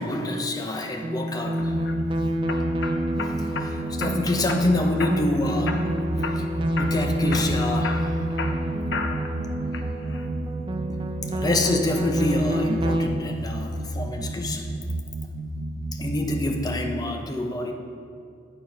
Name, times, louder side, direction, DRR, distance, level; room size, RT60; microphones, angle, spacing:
voice 1, 0.0-1.7 3.2-5.8 6.4-6.5 6.8-8.4 10.9-14.7 15.9-17.7, left 1 dB, 20° left, 3 dB, 0.6 m, -27 dB
sound 1, 1.0-13.1, equal, 25° right, 0.4 m, -28 dB
sound 2, 1.6-2.0 2.5-3.7 4.0-4.6 5.0-5.4 5.7-6.5 6.8-7.0 7.3-9.3 9.7-10.3, left 4 dB, 75° left, 0.5 m, -33 dB
sound 3, 1.6-16.8, right 1 dB, 80° right, 0.6 m, -32 dB
8.8 x 4.6 x 5.2 m, 2.3 s
head